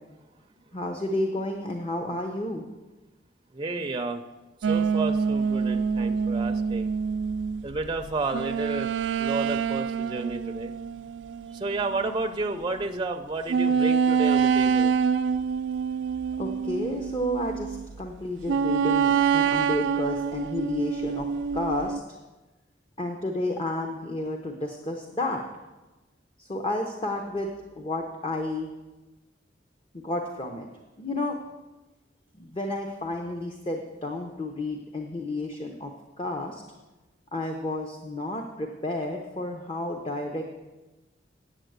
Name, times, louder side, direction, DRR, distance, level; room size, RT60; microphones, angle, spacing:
voice 1, 0.7-2.6 16.4-21.3 21.5-22.0 23.0-25.4 26.4-28.7 29.9-30.7 31.0-31.4 32.4-35.9 36.2-36.6 37.3-40.5, left 1 dB, 30° left, 3 dB, 0.8 m, -31 dB
voice 2, 3.5-4.2 4.7-6.9 7.6-8.9 9.2-10.7 11.5-14.9, right 3 dB, 25° right, 5 dB, 0.5 m, -31 dB
sound 1, 4.6-12.4 12.8-12.9 13.5-17.9 18.5-22.0, right 6 dB, 80° right, 0.3 m, -26 dB
8.9 x 7.2 x 8.0 m, 1.1 s
head